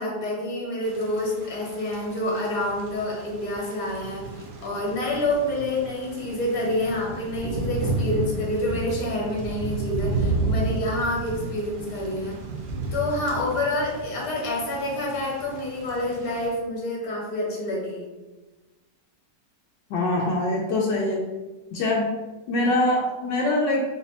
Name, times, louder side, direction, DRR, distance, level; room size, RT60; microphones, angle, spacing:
voice 1, 0.0-12.4 12.9-18.0, left 1 dB, 55° left, -3 dB, 1.5 m, -28 dB
Thunder / Rain, 0.8-16.5, right 3 dB, 75° right, 1.3 m, -32 dB
voice 2, 19.9-21.2 21.7-22.1 22.5-23.8, left 2 dB, 80° left, -3 dB, 1.3 m, -23 dB
4.1 x 2.0 x 4.1 m, 1.2 s
omnidirectional pair, 1.9 m